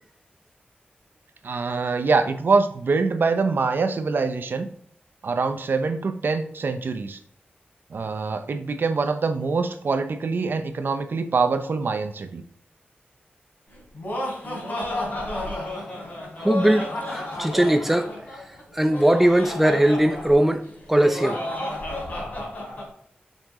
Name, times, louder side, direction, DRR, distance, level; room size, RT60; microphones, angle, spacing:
voice 1, 1.4-4.7 5.2-7.2 7.9-12.4, right 4 dB, 65° right, 0.7 m, -24 dB
Laughter, 13.7-22.9, left 1 dB, 50° left, 3.3 m, -32 dB
voice 2, 16.4-18.1 18.7-21.4, right 1 dB, 5° right, 0.6 m, -20 dB
6.6 x 6.4 x 3.7 m
wide cardioid pair, 110°, 4 cm